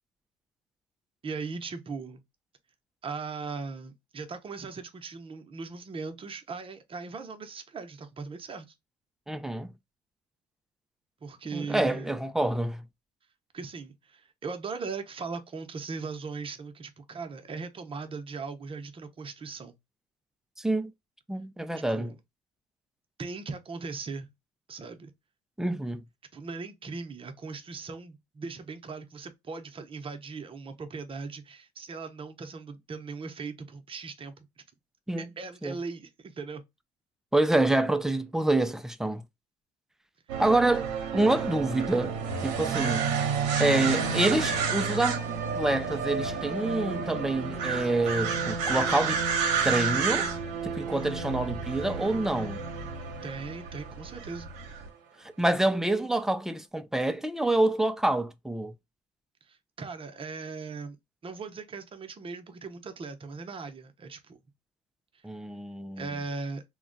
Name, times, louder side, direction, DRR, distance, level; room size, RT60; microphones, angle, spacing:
voice 1, 1.2-2.2 3.0-8.7 11.2-12.1 13.5-19.7 21.8-22.2 23.2-24.3 24.7-25.1 26.3-34.5 35.2-36.6 53.2-54.5 59.5-61.0 61.2-64.4 66.0-66.6, right 4 dB, 35° right, 0.7 m, -39 dB
voice 2, 9.3-9.7 11.5-12.8 20.6-20.9 21.3-22.1 25.6-26.0 35.1-35.3 35.6-35.7 37.3-39.2 40.4-42.1 42.4-43.1 43.6-45.3 45.5-49.2 49.6-50.3 50.6-52.6 55.2-58.7 65.2-66.1, right 2 dB, 5° right, 0.4 m, -27 dB
sound 1, 40.3-54.9, right 5 dB, 80° right, 0.7 m, -30 dB
2.2 x 2.2 x 3.8 m
supercardioid pair, 70°, 16 cm